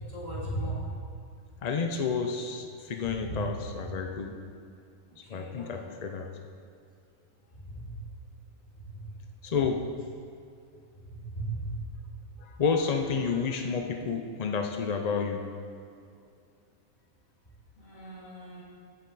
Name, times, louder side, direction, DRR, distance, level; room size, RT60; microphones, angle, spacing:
voice 1, 0.1-0.8 3.3-3.4 5.3-5.8 7.7-7.8 11.1-11.7 17.8-18.6, right 2 dB, 30° left, -7 dB, 3.0 m, -36 dB
voice 2, 1.6-4.3 5.3-6.3 9.4-9.8 12.4-15.4, left 5 dB, 60° left, 4 dB, 0.4 m, -30 dB
15.5 x 6.6 x 4.0 m, 2.4 s
omnidirectional pair, 1.5 m